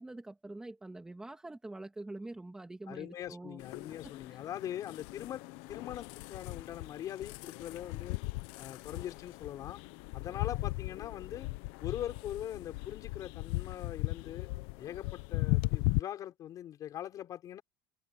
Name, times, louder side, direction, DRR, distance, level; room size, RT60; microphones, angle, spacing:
voice 1, 0.0-3.6 4.0-4.4, right 2 dB, 5° right, 2.0 m, -45 dB
voice 2, 2.9-8.2 8.6-9.8 10.1-11.5 11.8-14.5 14.8-17.6, left 11 dB, 35° left, 5.7 m, -42 dB
sound 1, 3.6-16.0, left 21 dB, 70° left, 0.9 m, -37 dB
cardioid pair, 175°, 10 cm